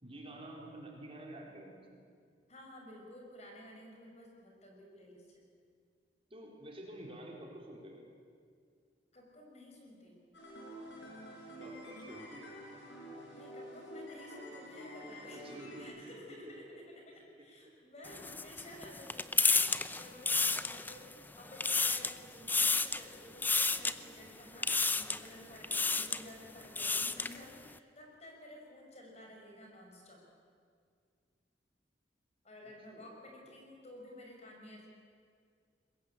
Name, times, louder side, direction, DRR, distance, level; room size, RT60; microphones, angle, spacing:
voice 1, 0.0-1.9 6.3-8.0 11.6-12.5 15.3-16.1 16.4-16.5 17.6-17.7 32.9-33.2, right 1 dB, 30° right, -1 dB, 4.2 m, -49 dB
voice 2, 2.5-5.5 9.1-10.3 13.3-30.2 32.4-34.9, left 1 dB, 40° left, 0 dB, 5.6 m, -53 dB
sound 1, 10.3-15.8, equal, 80° left, 6.2 m, -48 dB
sound 2, 18.0-21.1 21.5-22.2 22.5-23.0 23.4-23.9 24.6-25.3 25.6-26.2 26.6-27.4, left 4 dB, 10° left, 0.6 m, -31 dB
22.5 x 20.5 x 8.7 m, 2.2 s
head